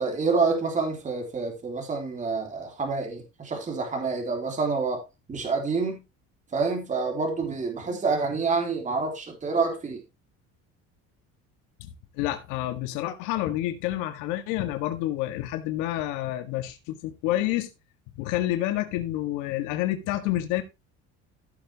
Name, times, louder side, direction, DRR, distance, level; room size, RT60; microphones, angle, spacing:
voice 1, 0.0-5.0 5.3-6.0 6.5-10.0, right 4 dB, 25° right, 3.4 m, -27 dB
voice 2, 11.8-17.7 18.2-20.6, left 14 dB, 85° left, 1.8 m, -29 dB
15.5 x 7.3 x 2.9 m
cardioid pair, 135°, 30 cm